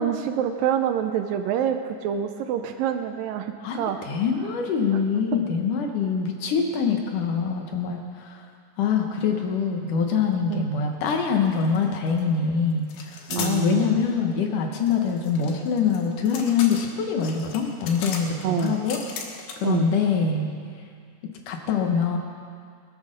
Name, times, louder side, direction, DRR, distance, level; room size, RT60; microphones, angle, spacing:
voice 1, 0.0-4.0 10.5-10.7 13.3-14.1 18.4-18.8 19.6-19.9, right 9 dB, 80° right, 7 dB, 2.2 m, -26 dB
voice 2, 3.6-8.4 8.8-19.0 19.6-20.5 21.5-22.2, left 6 dB, 70° left, 2 dB, 2.4 m, -24 dB
sound 1, 11.0-11.2 11.5-12.2 12.9-13.6 14.9-19.8, left 5 dB, 90° left, 3.3 m, -37 dB
20.5 x 8.5 x 6.5 m, 2.2 s
omnidirectional pair, 4.3 m